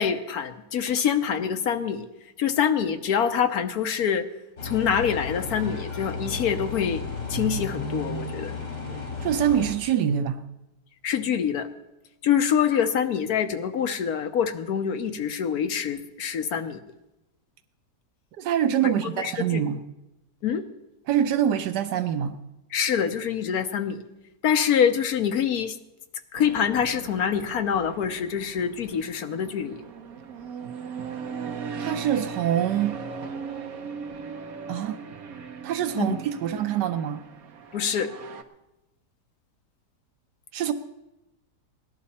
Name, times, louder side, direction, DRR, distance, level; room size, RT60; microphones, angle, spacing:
voice 1, 0.0-2.1 2.4-4.3 4.6-7.0 7.3-8.6 11.0-11.7 12.2-16.8 18.8-19.6 20.4-20.6 22.7-24.0 24.4-25.8 26.3-29.8 36.0-36.2 37.7-38.1, left 8 dB, 65° left, 8 dB, 1.2 m, -25 dB
sound 1, 4.6-9.8, left 3 dB, 85° left, 2.8 m, -33 dB
voice 2, 9.2-10.4 18.4-19.8 21.1-22.4 31.8-33.0 34.7-35.0 35.6-37.2 40.5-40.7, right 9 dB, 80° right, 9 dB, 1.3 m, -25 dB
sound 2, 26.3-38.4, right 6 dB, 60° right, 1.3 m, -38 dB
18.5 x 11.5 x 4.2 m, 0.95 s
omnidirectional pair, 1.8 m